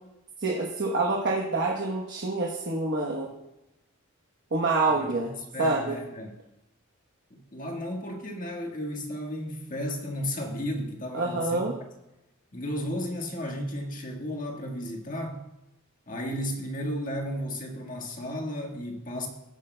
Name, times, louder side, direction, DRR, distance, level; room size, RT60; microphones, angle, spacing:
voice 1, 0.4-3.3 4.5-5.3 5.6-6.0 11.1-11.7, right 3 dB, 55° right, -1 dB, 1.1 m, -27 dB
voice 2, 4.9-6.3 7.3-11.7 12.5-15.4 16.1-19.3, equal, 40° left, 1 dB, 1.5 m, -34 dB
15.5 x 8.2 x 2.2 m, 0.92 s
head